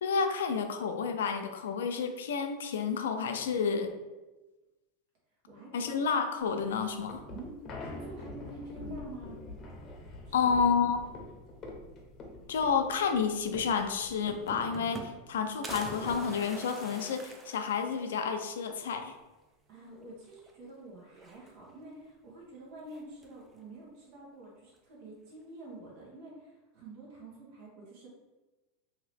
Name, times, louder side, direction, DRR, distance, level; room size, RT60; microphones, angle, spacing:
voice 1, 0.0-3.9 5.7-7.2 10.3-11.0 12.5-19.2, left 6 dB, 85° left, 6 dB, 0.4 m, -30 dB
voice 2, 5.5-5.9 7.3-9.4 10.2-10.5 19.7-28.1, right 1 dB, 60° right, -4 dB, 1.4 m, -47 dB
sound 1, 6.5-14.6, left 2 dB, 30° left, 0.8 m, -45 dB
sound 2, 13.7-13.8 14.0-15.3 15.6-18.2 18.6-18.7 19.0-19.1 20.3-20.7 21.1-21.8 22.9-23.4, right 2 dB, 20° right, 0.5 m, -44 dB
2.8 x 2.7 x 3.3 m, 1.1 s
supercardioid pair, 120°, 0 cm